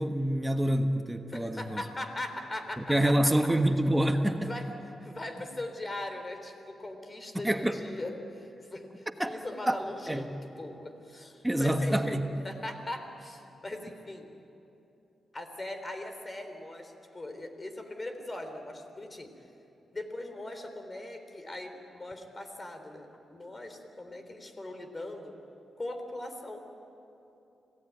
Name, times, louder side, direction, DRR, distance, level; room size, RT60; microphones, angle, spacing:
voice 1, 0.0-1.8 2.8-4.5 7.3-7.8 9.2-9.3 9.7-9.8 10.1-10.3 11.4-12.3, right 1 dB, 10° right, 6 dB, 1.3 m, -27 dB
voice 2, 1.3-3.3 4.5-4.7 5.0-14.3 15.3-19.3 19.9-25.3 25.8-26.7, left 1 dB, 25° left, 6 dB, 3.4 m, -40 dB
26.5 x 17.5 x 9.4 m, 2.8 s
cardioid pair, 85°, 0 cm